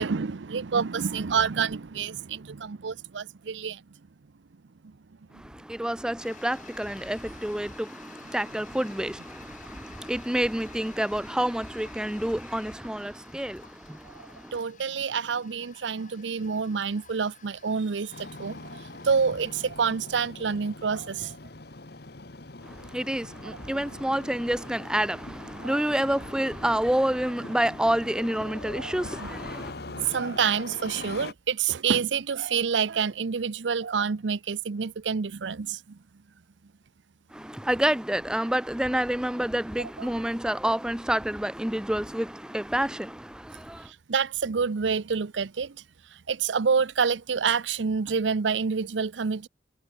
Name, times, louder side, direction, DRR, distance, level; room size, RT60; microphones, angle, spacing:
voice 1, 0.0-3.8 4.8-4.9 14.5-21.4 23.4-23.6 25.6-25.8 28.8-28.9 29.2-29.3 29.9-36.0 40.0-40.1 43.9-45.8 46.3-49.5, right 6 dB, 85° right, 0.6 m, -28 dB
voice 2, 5.3-14.6 22.6-29.7 37.3-43.9, right 1 dB, 5° right, 0.5 m, -28 dB
Toilet flush, 6.2-22.9, left 7 dB, 45° left, 2.7 m, -53 dB
Engine starting, 18.1-31.3, left 2 dB, 60° left, 1.5 m, -42 dB
head